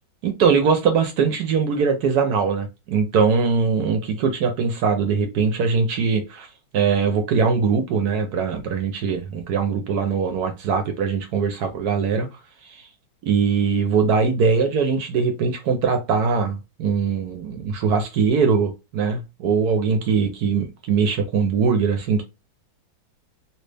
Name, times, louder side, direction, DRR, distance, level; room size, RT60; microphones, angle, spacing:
voice 1, 0.2-6.5 6.7-12.3 12.7-12.9 13.2-22.2, right 5 dB, 65° right, 1.0 m, -21 dB
3.2 x 2.5 x 3.3 m
omnidirectional pair, 2.1 m